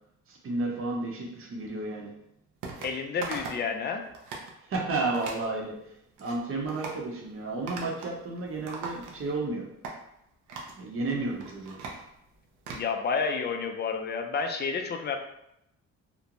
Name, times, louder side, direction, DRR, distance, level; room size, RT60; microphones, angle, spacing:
voice 1, 0.3-2.1 4.7-5.7 6.2-9.7 10.7-11.8, right 2 dB, 45° right, -1 dB, 0.7 m, -32 dB
sound 1, 2.6-2.9 3.2-3.7 4.0-4.5 5.1-5.4 6.0-6.4 6.7-7.0 7.7-8.2 8.4-9.4 9.8-10.0 10.5-10.8 11.3-12.9, right 4 dB, 85° right, 0.6 m, -40 dB
voice 2, 2.8-4.0 12.7-15.2, left 5 dB, 35° left, 5 dB, 0.4 m, -30 dB
2.5 x 2.0 x 2.9 m, 0.80 s
cardioid pair, 90°, 30 cm